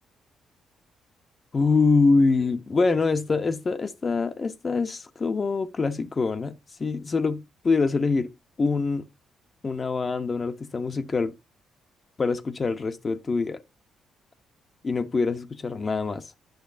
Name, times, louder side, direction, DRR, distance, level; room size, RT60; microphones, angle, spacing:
voice 1, 1.5-6.5 6.8-8.3 8.6-9.0 9.6-11.4 12.2-13.6 14.8-16.3, left 4 dB, 35° left, 0.6 m, -24 dB
10.5 x 6.3 x 2.5 m
cardioid pair, 90°, 0 cm